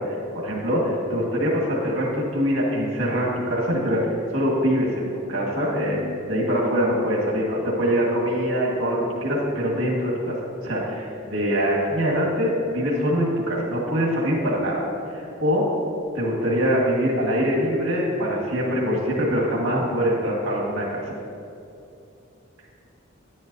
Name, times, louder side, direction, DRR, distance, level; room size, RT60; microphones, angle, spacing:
voice 1, 0.3-4.0 4.3-10.3 10.6-14.8 15.1-15.7 16.1-21.0, equal, 80° right, -3 dB, 1.6 m, -23 dB
10.5 x 9.5 x 2.7 m, 2.7 s
head